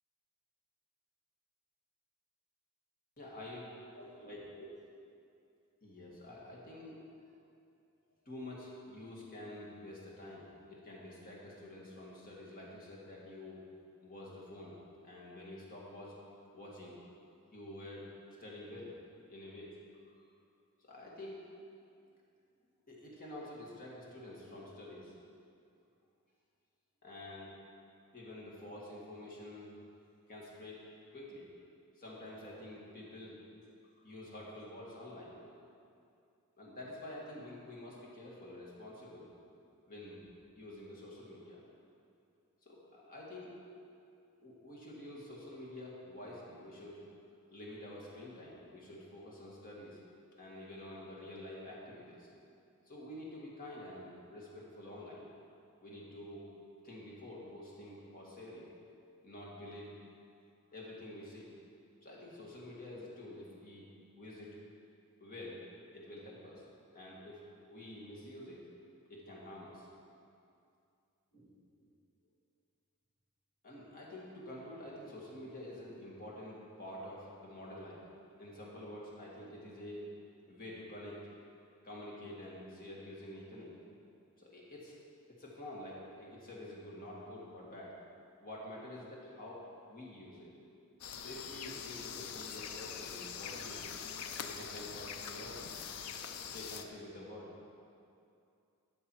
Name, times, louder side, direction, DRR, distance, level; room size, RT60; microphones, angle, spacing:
voice 1, 3.2-3.7 3.9-4.7 5.8-7.4 8.3-10.5 10.8-13.6 14.0-14.8 15.0-16.1 16.5-17.0 17.5-18.1 18.4-18.9 19.3-19.7 20.8-21.4 22.9-25.1 27.0-27.5 28.1-29.7 30.3-30.8 31.1-31.5 32.0-33.4 34.0-35.4 36.6-39.3 39.9-40.3 40.5-41.6 42.6-43.5 44.4-47.0 47.5-50.0 50.4-52.3 52.8-55.2 55.8-56.4 56.8-58.7 59.2-59.9 60.7-61.5 62.0-63.9 64.2-64.6 65.2-65.6 65.9-66.6 66.9-67.4 67.7-68.7 69.1-69.9 71.3-71.5 71.8-71.9 73.6-78.0 78.4-80.1 80.5-81.2 81.8-83.7 84.4-85.0 85.4-87.9 88.4-90.5 91.2-94.0 94.4-95.7 96.5-97.5, left 1 dB, 40° left, -5 dB, 1.9 m, -48 dB
sound 1, 91.0-96.9, left 7 dB, 75° left, 0.5 m, -43 dB
11.5 x 6.6 x 4.7 m, 2.5 s
head